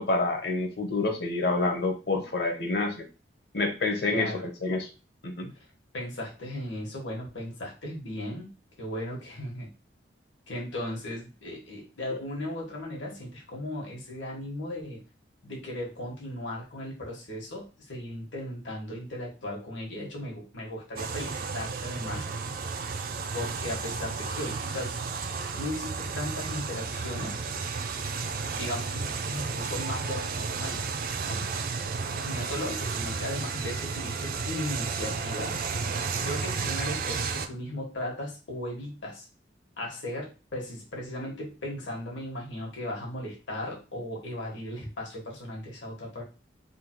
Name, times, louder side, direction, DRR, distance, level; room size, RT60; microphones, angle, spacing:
voice 1, 0.0-3.0 3.5-4.9 5.2-5.5, left 2 dB, 60° left, 4 dB, 0.9 m, -28 dB
voice 2, 4.1-4.5 5.9-8.5 8.8-9.7 10.5-15.0 15.4-22.3 23.3-24.9 25.5-27.4 28.5-31.4 32.2-35.5 36.1-39.3 39.8-46.2, left 1 dB, 80° left, -2 dB, 1.5 m, -36 dB
sound 1, 21.0-37.5, right 5 dB, 50° right, 0.4 m, -32 dB
3.6 x 2.3 x 4.5 m, 0.32 s
head